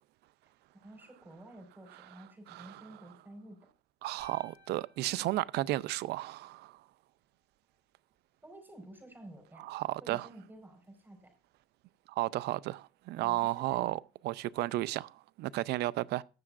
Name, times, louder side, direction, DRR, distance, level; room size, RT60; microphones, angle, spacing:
voice 1, 0.7-3.6 8.4-9.7 10.0-11.3 13.2-14.0, right 1 dB, 10° right, 5.0 m, -51 dB
voice 2, 2.5-2.8 4.0-6.8 9.6-10.3 12.1-16.2, right 17 dB, 80° right, 0.5 m, -33 dB
sound 1, 4.2-6.5, left 3 dB, 15° left, 5.2 m, -61 dB
19.5 x 6.8 x 2.5 m
cardioid pair, 110°, 17 cm